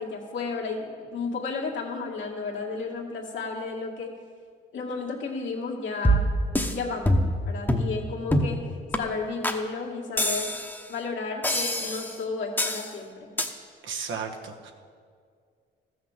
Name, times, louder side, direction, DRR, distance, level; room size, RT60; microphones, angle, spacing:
voice 1, 0.0-4.1 4.7-6.3 6.7-7.1 7.4-8.6 9.0-10.5 10.9-13.3, left 4 dB, 70° left, -1 dB, 2.1 m, -33 dB
sound 1, 6.0-6.7 7.1-7.4 7.7-7.9 8.3-8.6 8.9-9.0 9.4-9.6 10.2-10.8 11.4-12.2 12.6-12.9 13.4-13.5, equal, 10° left, 1.0 m, -24 dB
voice 2, 13.8-14.7, right 6 dB, 80° right, 3 dB, 1.3 m, -34 dB
13.5 x 6.4 x 7.3 m, 2.1 s
cardioid pair, 90°, 20 cm